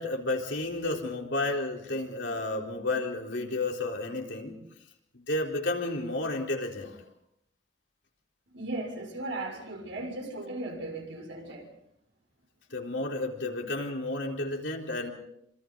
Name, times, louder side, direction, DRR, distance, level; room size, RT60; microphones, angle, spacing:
voice 1, 0.0-4.6 5.1-7.0 12.7-15.1, left 2 dB, 70° left, 0 dB, 4.1 m, -32 dB
voice 2, 8.5-11.7, right 2 dB, 80° right, 2 dB, 6.5 m, -37 dB
27.0 x 26.0 x 4.0 m, 0.74 s
head